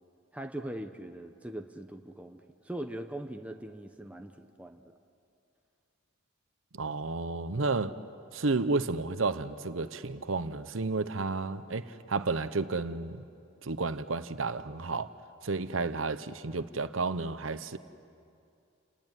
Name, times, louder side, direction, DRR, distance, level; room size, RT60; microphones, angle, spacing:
voice 1, 0.3-4.9, right 1 dB, 5° right, 0.9 m, -41 dB
voice 2, 6.7-8.0 8.3-13.2 13.6-15.1 15.4-17.8, right 3 dB, 75° right, 0.9 m, -32 dB
29.5 x 19.0 x 9.1 m
head